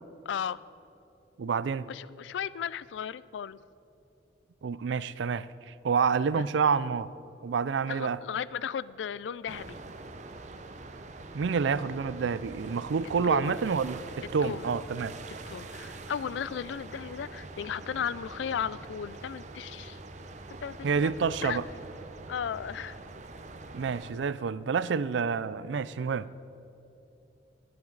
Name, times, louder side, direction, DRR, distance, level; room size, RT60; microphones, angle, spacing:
voice 1, 0.3-0.6 1.9-3.6 6.3-6.4 7.9-9.8 13.2-13.6 14.4-14.7 15.5-20.0 20.6-21.6 22.3-23.0, left 8 dB, 90° left, 0.3 m, -35 dB
voice 2, 1.4-1.9 4.6-7.1 7.4-8.2 11.3-15.1 20.8-21.7 23.7-26.3, right 5 dB, 85° right, 0.4 m, -28 dB
sound 1, 9.5-24.1, right 2 dB, 40° right, 0.7 m, -44 dB
19.0 x 10.5 x 3.9 m
head